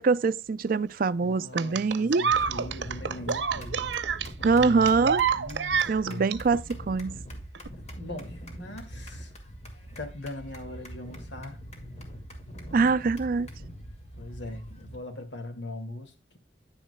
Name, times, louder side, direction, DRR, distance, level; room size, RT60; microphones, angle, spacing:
voice 1, 0.0-2.2 4.4-5.2 5.9-7.2 12.7-13.5, right 4 dB, 50° right, 0.4 m, -24 dB
voice 2, 1.2-3.8 4.5-6.3 8.0-9.3 10.0-11.6 14.2-16.4, left 1 dB, 75° left, 2.0 m, -40 dB
sound 1, 1.6-6.4 7.6-7.7, right 6 dB, 80° right, 0.7 m, -28 dB
sound 2, 2.3-15.0, equal, 40° left, 2.1 m, -42 dB
9.9 x 9.6 x 2.2 m
head